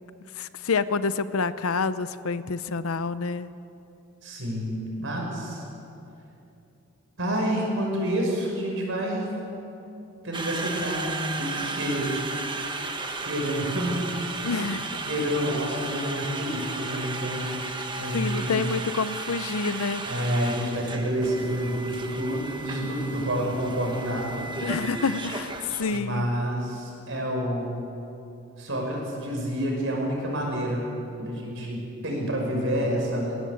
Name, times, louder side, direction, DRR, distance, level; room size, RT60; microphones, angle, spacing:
voice 1, 0.4-3.5 14.4-14.9 18.1-20.0 24.6-25.5 25.8-26.3, left 4 dB, 75° left, 14 dB, 0.7 m, -27 dB
voice 2, 4.2-5.6 7.2-9.3 10.2-12.1 13.2-14.0 14.4-14.7 15.0-17.7 18.0-18.7 20.0-24.4 25.9-27.8 28.6-30.9 31.2-33.4, equal, 60° right, 0 dB, 6.0 m, -28 dB
Conversation, 10.3-26.0, right 3 dB, 20° right, 1.2 m, -34 dB
20.5 x 17.5 x 7.8 m, 2.8 s
head